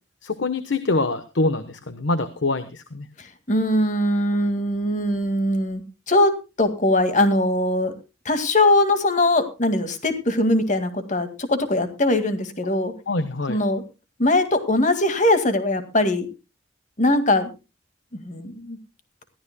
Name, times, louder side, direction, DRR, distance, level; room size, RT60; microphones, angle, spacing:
voice 1, 0.2-3.1 13.1-13.6, left 2 dB, 80° left, 11 dB, 1.1 m, -25 dB
voice 2, 3.2-5.8 6.1-6.3 6.6-7.9 8.3-12.9 13.5-13.8 14.2-16.3 17.0-17.5 18.1-18.8, left 1 dB, 40° left, 8 dB, 2.0 m, -21 dB
21.0 x 15.0 x 2.2 m, 0.29 s
head